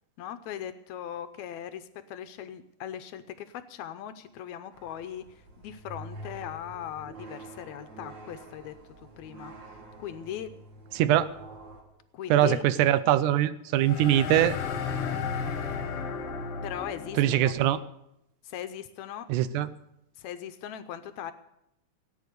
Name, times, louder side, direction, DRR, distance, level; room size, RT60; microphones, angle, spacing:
voice 1, 0.2-9.5 10.0-10.5 12.1-12.6 16.6-17.6 18.4-19.3 20.2-21.3, left 10 dB, 75° left, 10 dB, 1.9 m, -39 dB
sound 1, 4.7-11.8, right 2 dB, 40° right, 2.4 m, -47 dB
voice 2, 10.9-11.3 12.3-14.6 17.2-17.8 19.3-19.7, right 12 dB, 80° right, 15 dB, 2.1 m, -22 dB
sound 2, 13.8-17.5, left 6 dB, 60° left, 2.0 m, -33 dB
17.5 x 9.3 x 6.7 m, 0.83 s
omnidirectional pair, 3.6 m